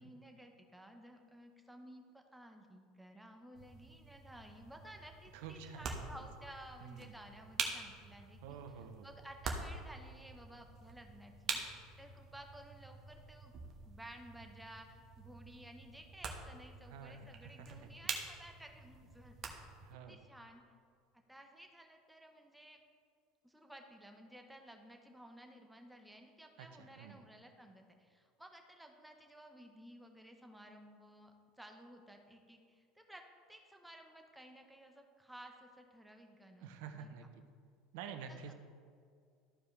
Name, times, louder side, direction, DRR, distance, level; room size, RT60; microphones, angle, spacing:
voice 1, 0.0-13.5 13.8-19.4 20.1-20.6 21.1-22.8 23.4-33.2 33.5-37.1 38.3-38.5, right 1 dB, 5° right, 3 dB, 1.1 m, -55 dB
sound 1, 3.5-19.9, right 5 dB, 45° right, 1.2 m, -46 dB
voice 2, 5.3-6.1 6.8-7.1 8.4-9.1 16.9-17.9 19.8-20.2 26.6-27.2 36.6-37.4 37.9-38.5, right 7 dB, 70° right, 7 dB, 0.7 m, -49 dB
13.5 x 4.7 x 3.4 m, 2.2 s
hypercardioid pair, 85°, 0 cm